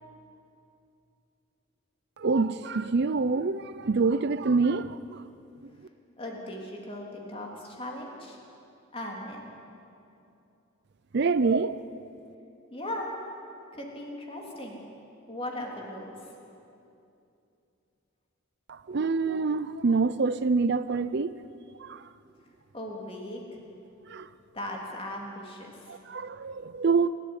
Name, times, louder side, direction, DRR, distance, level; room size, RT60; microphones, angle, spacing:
voice 1, 2.2-5.2 5.6-5.7 11.1-11.8 18.7-21.4 21.8-22.1 24.0-24.3 25.9-27.1, right 4 dB, 55° right, 0.5 m, -26 dB
voice 2, 6.2-8.4 8.9-9.5 12.7-13.1 13.7-14.8 15.3-16.2 22.7-23.6 24.5-26.0, left 1 dB, 25° left, 3.4 m, -38 dB
27.5 x 13.0 x 9.8 m
head